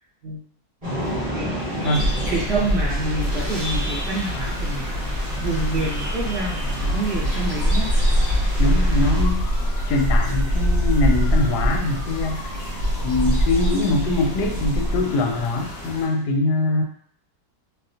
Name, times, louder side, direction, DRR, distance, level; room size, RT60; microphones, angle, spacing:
sound 1, 0.8-9.2, equal, 25° right, 1.2 m, -31 dB
voice 1, 1.3-7.9, right 2 dB, 75° right, -6 dB, 1.7 m, -28 dB
sound 2, 1.9-15.0, equal, 45° right, 1.4 m, -23 dB
sound 3, 3.2-16.1, left 1 dB, 55° left, 0.4 m, -36 dB
voice 2, 8.6-9.5 9.9-12.5 13.0-16.8, left 2 dB, 85° left, 3 dB, 1.1 m, -23 dB
4.0 x 2.0 x 2.7 m, 0.62 s
omnidirectional pair, 1.7 m